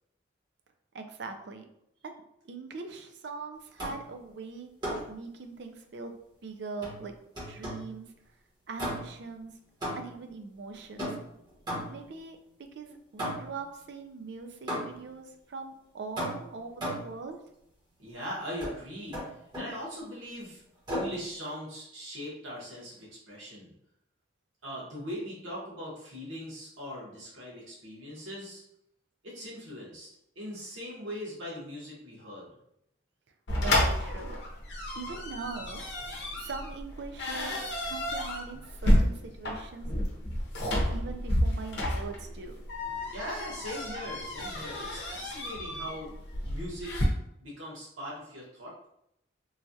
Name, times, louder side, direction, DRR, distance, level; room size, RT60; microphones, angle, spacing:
voice 1, 0.9-1.7 2.0-2.1 2.4-6.1 6.4-7.2 7.5-8.1 8.7-9.5 9.9-11.2 11.9-12.4 12.7-17.4 33.6-34.4 34.9-35.8 36.4-40.0 40.9-42.6, right 4 dB, 60° right, 6 dB, 0.4 m, -41 dB
sound 1, 3.8-4.1 4.8-5.2 6.8-7.9 8.8-9.3 9.8-10.3 11.0-12.1 13.2-13.7 14.7-15.1 16.2-17.2 18.6-18.8 19.1-19.8 20.9-21.2, equal, 20° right, 1.0 m, -36 dB
voice 2, 18.0-19.2 19.5-20.6 20.9-23.7 24.6-28.6 29.2-30.1 30.3-32.5 43.1-46.1 46.5-47.1 47.4-48.9, equal, 90° right, -5 dB, 1.3 m, -40 dB
sound 2, 33.5-47.1, left 1 dB, 60° left, 0.7 m, -30 dB
3.1 x 2.3 x 2.6 m, 0.77 s
head